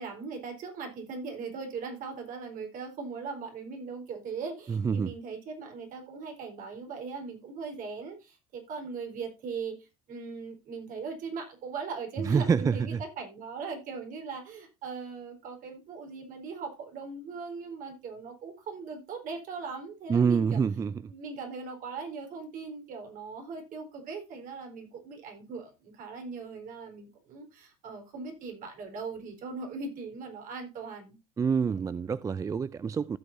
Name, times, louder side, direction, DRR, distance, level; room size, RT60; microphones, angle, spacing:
voice 1, 0.0-20.6 21.1-31.2, right 4 dB, 55° right, 4.4 m, -39 dB
voice 2, 4.7-5.1 12.2-13.0 20.1-21.1 31.4-33.2, right 6 dB, 20° right, 0.4 m, -27 dB
15.5 x 6.8 x 2.7 m
supercardioid pair, 110°, 17 cm